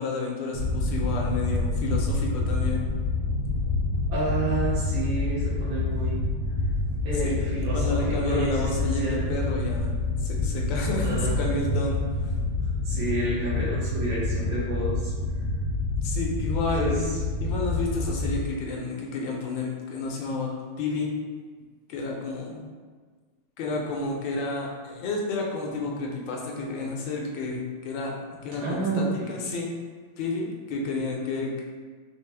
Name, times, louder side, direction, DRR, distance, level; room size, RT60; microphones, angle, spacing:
voice 1, 0.0-2.8 7.1-7.3 7.7-9.9 10.2-12.3 16.0-17.1 17.4-20.5 20.8-21.1 21.9-22.6 23.6-29.7 30.2-31.6, left 3 dB, 75° left, -1 dB, 1.3 m, -31 dB
sound 1, 0.5-18.4, left 2 dB, 80° right, 1.5 m, -27 dB
voice 2, 4.1-6.3 7.0-8.5 8.8-9.2 11.0-11.4 12.8-15.1 16.7-17.2 28.6-29.5, right 2 dB, 60° right, -8 dB, 1.1 m, -30 dB
4.1 x 2.1 x 3.3 m, 1.5 s
omnidirectional pair, 2.1 m